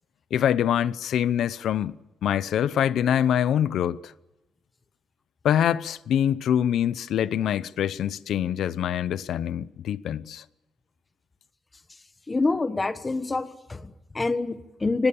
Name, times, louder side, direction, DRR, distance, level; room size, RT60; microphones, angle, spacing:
voice 1, 0.3-2.0 2.2-4.1 5.4-10.4, left 10 dB, 75° left, 0.7 m, -24 dB
voice 2, 12.3-15.1, left 3 dB, 15° left, 1.2 m, -26 dB
24.0 x 19.5 x 7.1 m
wide cardioid pair, 175°, 0 cm